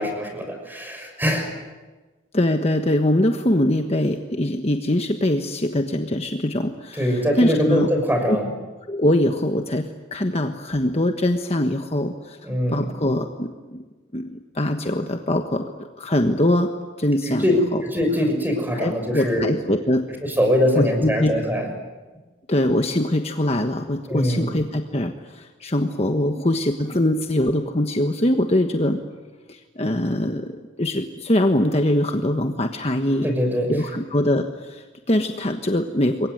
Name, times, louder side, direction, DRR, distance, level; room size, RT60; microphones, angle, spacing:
voice 1, 0.0-1.5 6.9-8.5 12.4-12.9 17.2-17.5 17.8-19.4 20.3-21.6 24.1-24.5 33.2-33.7, equal, 10° right, 4 dB, 5.9 m, -22 dB
voice 2, 2.3-7.9 8.3-8.4 8.9-12.4 12.7-13.8 14.1-16.7 17.0-17.8 18.7-20.1 20.7-21.3 22.5-29.0 29.5-30.5 30.8-33.3 33.7-36.3, left 1 dB, 30° left, 5 dB, 1.4 m, -22 dB
27.5 x 22.5 x 9.4 m, 1.3 s
head